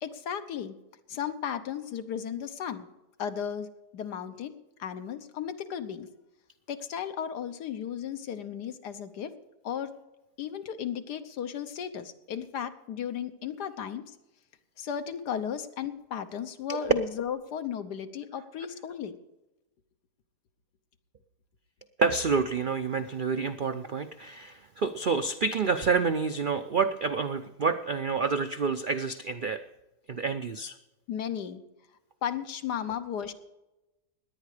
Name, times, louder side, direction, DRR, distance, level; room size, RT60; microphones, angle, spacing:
voice 1, 0.0-0.7 1.1-2.9 3.2-3.7 3.9-6.1 6.7-9.3 9.6-9.9 10.4-14.1 14.8-19.2 31.1-31.6 32.2-33.3, left 8 dB, 85° left, 10 dB, 1.6 m, -35 dB
voice 2, 22.0-29.6 30.1-30.7, right 5 dB, 85° right, 9 dB, 0.4 m, -28 dB
18.0 x 10.5 x 4.9 m, 0.98 s
omnidirectional pair, 1.7 m